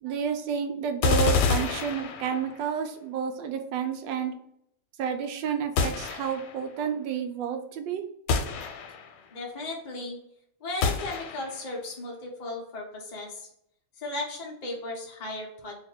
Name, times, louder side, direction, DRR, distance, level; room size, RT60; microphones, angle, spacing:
voice 1, 0.0-4.3 5.0-8.0, right 7 dB, 75° right, 6 dB, 1.2 m, -30 dB
sound 1, 1.0-2.7 5.8-6.6 8.3-9.2 10.8-11.7, left 5 dB, 85° left, 1.4 m, -27 dB
voice 2, 9.3-10.2 10.6-13.5 14.0-15.8, left 2 dB, 65° left, -2 dB, 0.4 m, -36 dB
3.1 x 2.8 x 4.4 m, 0.73 s
omnidirectional pair, 2.2 m